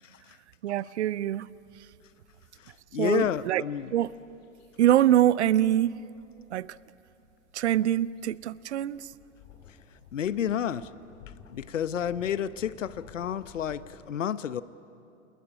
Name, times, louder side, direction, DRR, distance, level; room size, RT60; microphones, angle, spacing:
voice 1, 0.6-1.5 3.0-3.6 3.9-4.1 4.8-5.9 6.5-6.7 7.5-9.1, right 12 dB, 60° right, 20 dB, 0.7 m, -24 dB
sound 1, 1.5-14.0, left 8 dB, 50° left, 3.7 m, -56 dB
voice 2, 2.9-3.9 10.1-10.9 11.5-14.6, left 9 dB, 70° left, 16 dB, 1.0 m, -30 dB
28.0 x 20.0 x 9.8 m, 2.7 s
figure-of-eight pair, 110°, 39 cm